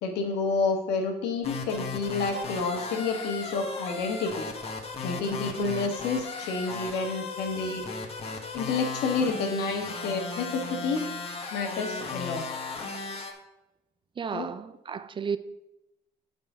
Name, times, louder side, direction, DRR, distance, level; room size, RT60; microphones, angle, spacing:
voice 1, 0.0-4.5 5.0-7.8 8.5-11.0 11.5-12.4 14.3-14.5, left 4 dB, 85° left, 1.6 m, -29 dB
sound 1, 1.4-13.3, left 3 dB, 35° left, 1.3 m, -36 dB
voice 2, 14.2-15.4, right 6 dB, 30° right, 0.4 m, -33 dB
7.3 x 5.4 x 5.6 m
cardioid pair, 110°, 17 cm